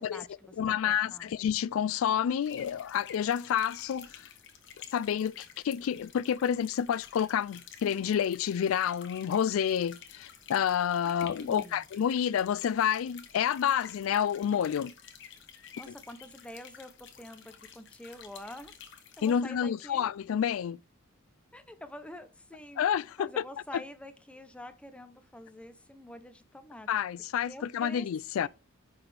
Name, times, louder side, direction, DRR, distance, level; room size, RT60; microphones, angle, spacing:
voice 1, 0.0-1.3 11.0-11.8 15.8-18.8 19.2-20.1 21.5-22.9 23.2-26.9 27.4-28.1 28.4-28.5, left 1 dB, 5° left, 0.7 m, -47 dB
voice 2, 0.6-4.3 4.9-14.9 19.2-20.8 22.8-23.4 23.7-23.8 26.9-28.5, left 8 dB, 90° left, 0.3 m, -29 dB
sound 1, 2.4-19.3, left 8 dB, 60° left, 1.2 m, -51 dB
10.0 x 4.2 x 3.3 m
head